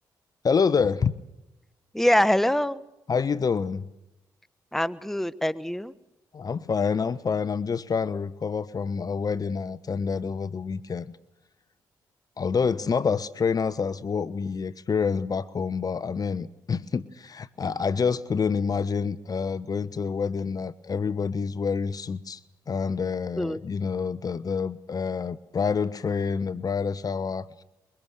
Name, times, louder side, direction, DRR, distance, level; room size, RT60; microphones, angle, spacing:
voice 1, 0.4-1.1 3.1-3.9 6.3-11.0 12.4-22.4 22.7-27.5, left 5 dB, 45° left, 18 dB, 1.1 m, -27 dB
voice 2, 1.9-2.8 4.7-5.9 23.4-23.6, left 1 dB, 5° left, 16 dB, 1.2 m, -24 dB
23.5 x 23.0 x 6.6 m, 0.91 s
supercardioid pair, 55°, 9 cm